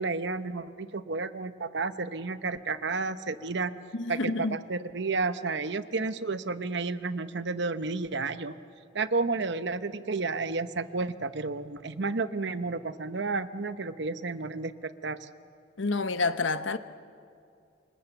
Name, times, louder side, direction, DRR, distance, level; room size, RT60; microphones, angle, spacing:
voice 1, 0.0-3.7 4.1-8.5 8.9-15.3, right 3 dB, 65° right, 0.9 m, -31 dB
voice 2, 3.9-4.6 15.8-16.8, left 3 dB, 80° left, 1.0 m, -28 dB
28.5 x 26.0 x 7.2 m
head